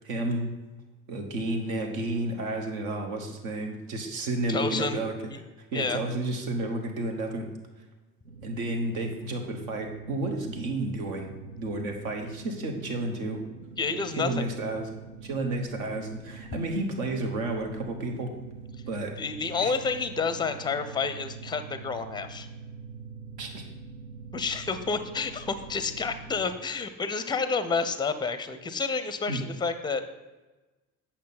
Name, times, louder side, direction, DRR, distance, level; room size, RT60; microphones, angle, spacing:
voice 1, 0.0-0.5 1.1-5.1 5.7-7.5 8.4-11.3 11.6-13.4 14.2-14.9 15.2-18.3 18.9-19.1 19.6-19.7 23.4-23.6 29.3-29.4, right 2 dB, 65° right, 3 dB, 1.3 m, -31 dB
voice 2, 4.5-5.0 5.7-6.0 13.8-14.5 19.2-22.5 24.3-30.0, left 4 dB, 10° left, 11 dB, 0.5 m, -29 dB
sound 1, 8.2-26.5, right 4 dB, 85° right, 0.6 m, -44 dB
8.5 x 5.7 x 4.1 m, 1.2 s
figure-of-eight pair, 55°, 44 cm